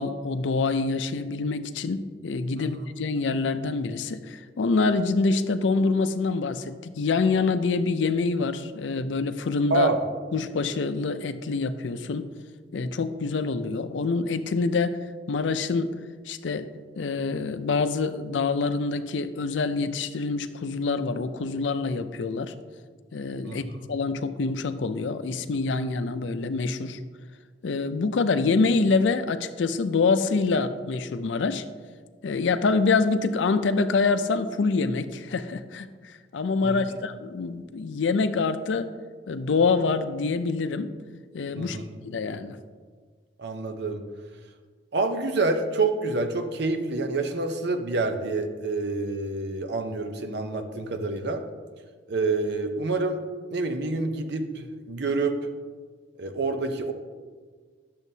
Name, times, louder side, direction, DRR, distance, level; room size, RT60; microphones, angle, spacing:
voice 1, 0.0-9.9 10.3-12.3 12.7-15.0 15.3-16.0 16.3-16.7 17.0-22.5 23.1-27.0 27.6-31.6 32.2-38.9 39.3-40.9 41.3-41.8 42.0-42.6, left 4 dB, 80° left, 11 dB, 0.5 m, -26 dB
voice 2, 43.4-44.0 44.9-51.4 52.1-53.2 53.5-55.4 56.2-56.9, right 3 dB, 65° right, 6 dB, 0.7 m, -27 dB
10.5 x 7.0 x 2.7 m, 1.5 s
head